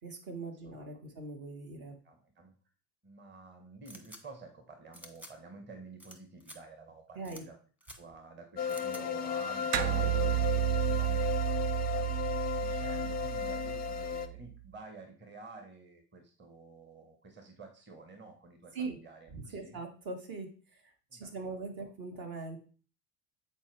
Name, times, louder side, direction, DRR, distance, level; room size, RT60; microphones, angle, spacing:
voice 1, 0.0-2.0 7.1-7.4 18.7-19.0 19.3-22.6, right 3 dB, 50° right, 3 dB, 1.7 m, -41 dB
voice 2, 2.0-2.5 3.0-7.6 8.0-19.8 21.1-21.9, right 3 dB, 20° right, 4 dB, 1.4 m, -51 dB
sound 1, 3.9-4.2 4.9-5.3 6.0-6.2 6.4-6.6 7.2-7.4 7.8-8.0 8.7-9.0, equal, 5° right, 1.0 m, -49 dB
sound 2, 8.6-14.3, left 7 dB, 20° left, 0.5 m, -34 dB
sound 3, 9.7-14.5, right 17 dB, 75° right, 0.7 m, -32 dB
8.0 x 4.4 x 3.4 m, 0.39 s
figure-of-eight pair, 65°, 48 cm